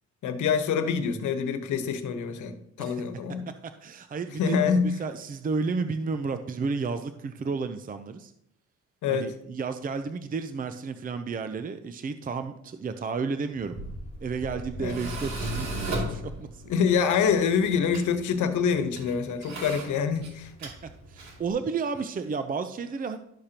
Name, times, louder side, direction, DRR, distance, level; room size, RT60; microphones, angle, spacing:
voice 1, 0.2-3.5 4.4-4.9 9.0-9.3 14.8-15.1 16.7-20.5, left 6 dB, 75° left, 8 dB, 1.1 m, -26 dB
voice 2, 3.8-4.6 4.8-8.3 9.1-13.8 14.2-15.7 15.9-16.7 20.6-23.2, right 4 dB, 30° right, 9 dB, 0.6 m, -32 dB
Tools, 13.5-21.5, right 1 dB, 65° right, 2.7 m, -37 dB
12.0 x 6.5 x 2.9 m, 0.75 s
cardioid pair, 90°, 30 cm